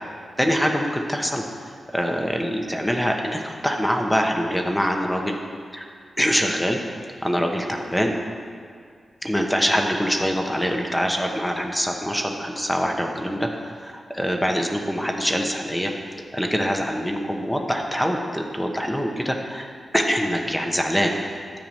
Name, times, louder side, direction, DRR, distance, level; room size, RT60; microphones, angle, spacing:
voice 1, 0.4-5.4 5.7-5.9 6.2-6.8 7.2-8.2 9.2-15.9 16.3-21.1, equal, 5° left, 2 dB, 1.1 m, -24 dB
10.5 x 4.8 x 7.6 m, 2.1 s
cardioid pair, 55°, 0 cm